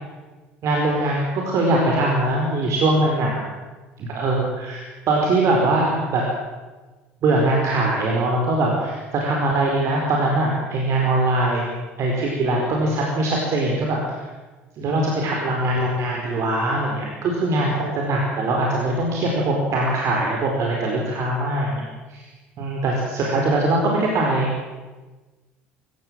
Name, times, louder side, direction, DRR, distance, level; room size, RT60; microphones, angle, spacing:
voice 1, 0.6-3.4 4.0-6.2 7.2-11.6 12.0-14.0 14.8-22.2 22.6-24.5, right 2 dB, 55° right, -1 dB, 4.8 m, -22 dB
24.5 x 16.5 x 7.7 m, 1.3 s
hypercardioid pair, 60°, 6 cm